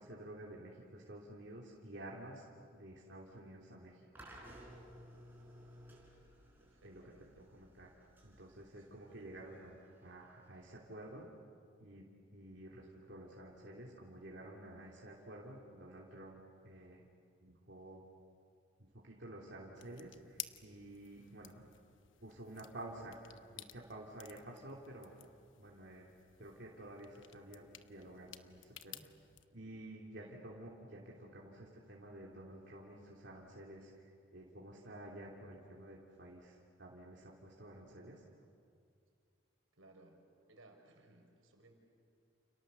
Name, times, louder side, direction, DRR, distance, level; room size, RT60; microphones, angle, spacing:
voice 1, 0.0-4.0 6.8-7.0 7.4-11.3 11.8-17.1 17.4-18.0 18.8-21.5 22.2-23.1 23.5-25.1 25.6-26.0 26.4-29.1 29.5-34.0 34.3-38.2, right 1 dB, 60° right, -4 dB, 3.0 m, -51 dB
sound 1, 4.2-11.2, equal, 10° right, 5.2 m, -58 dB
voice 2, 6.6-7.5 8.8-9.3 30.1-30.5 39.7-40.2 40.5-41.7, right 2 dB, 85° right, 3 dB, 4.6 m, -63 dB
sound 2, 19.8-29.4, left 12 dB, 70° left, 1.0 m, -54 dB
29.5 x 29.0 x 6.9 m, 2.3 s
head